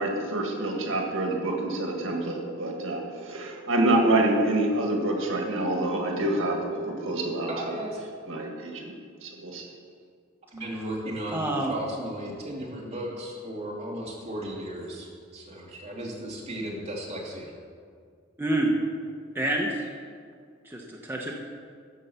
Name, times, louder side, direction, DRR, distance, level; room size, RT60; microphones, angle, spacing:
voice 1, 0.0-6.6 6.8-7.5 8.3-8.9 9.2-9.6, right 1 dB, 80° right, 1 dB, 1.7 m, -26 dB
voice 2, 7.5-8.0 10.5-15.1 15.3-17.5, right 1 dB, 30° right, -4 dB, 2.6 m, -35 dB
voice 3, 11.3-11.7 18.4-18.7 19.3-19.8 20.7-21.3, right 1 dB, 10° right, -2 dB, 0.9 m, -27 dB
13.5 x 5.5 x 7.0 m, 2.1 s
head